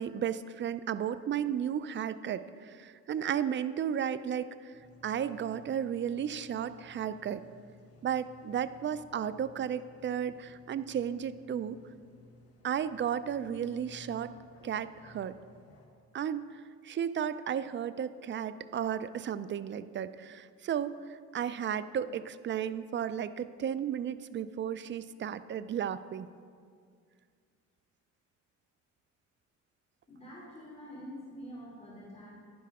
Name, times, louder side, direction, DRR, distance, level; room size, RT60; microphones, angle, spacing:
voice 1, 0.0-4.7 5.0-7.4 8.0-11.8 12.6-14.3 14.6-15.4 16.1-26.3, right 9 dB, 40° right, 14 dB, 0.4 m, -34 dB
sound 1, 4.7-15.9, left 1 dB, 50° left, 1.5 m, -57 dB
voice 2, 30.1-32.3, equal, 20° left, -6 dB, 2.9 m, -46 dB
10.5 x 10.0 x 3.6 m, 2.1 s
cardioid pair, 90°, 30 cm